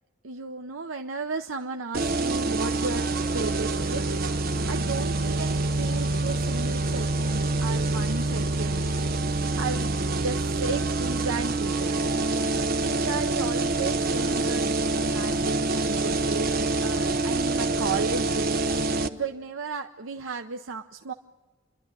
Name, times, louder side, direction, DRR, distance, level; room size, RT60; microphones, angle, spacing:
voice 1, 0.2-4.1 4.4-8.8 9.2-12.5 12.8-14.7 15.1-18.7 19.1-21.1, right 4 dB, 90° right, 5 dB, 0.9 m, -34 dB
sound 1, 1.9-19.1, right 2 dB, 50° right, 1.0 m, -26 dB
29.5 x 12.5 x 9.7 m, 1.3 s
head